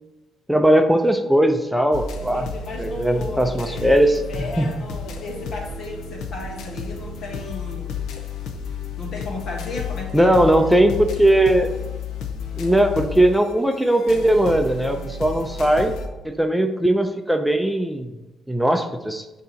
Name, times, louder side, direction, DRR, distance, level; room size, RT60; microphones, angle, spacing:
voice 1, 0.5-2.5 2.8-4.2 4.6-4.7 10.1-11.7 12.5-15.9 16.2-18.1 18.5-19.2, right 1 dB, 5° right, 5 dB, 0.5 m, -19 dB
sound 1, 1.9-16.1, left 5 dB, 85° left, 0.7 m, -32 dB
voice 2, 2.2-8.0 9.0-10.4, left 2 dB, 65° left, 0 dB, 1.5 m, -34 dB
6.6 x 2.9 x 5.6 m, 1.1 s
cardioid pair, 90°, 0 cm